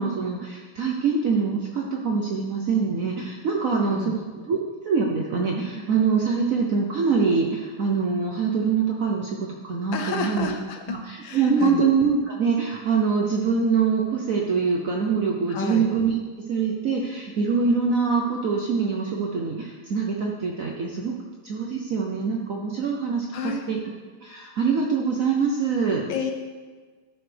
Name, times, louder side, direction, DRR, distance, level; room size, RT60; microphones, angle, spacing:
voice 1, 0.0-4.6 4.8-10.5 10.9-16.2 16.5-21.2 21.4-23.8 24.2-26.0, right 5 dB, 60° right, 0 dB, 0.9 m, -24 dB
voice 2, 9.9-11.8 15.5-15.9 23.3-23.6 26.1-26.3, left 5 dB, 70° left, 5 dB, 1.4 m, -30 dB
12.5 x 6.4 x 3.4 m, 1.4 s
omnidirectional pair, 2.3 m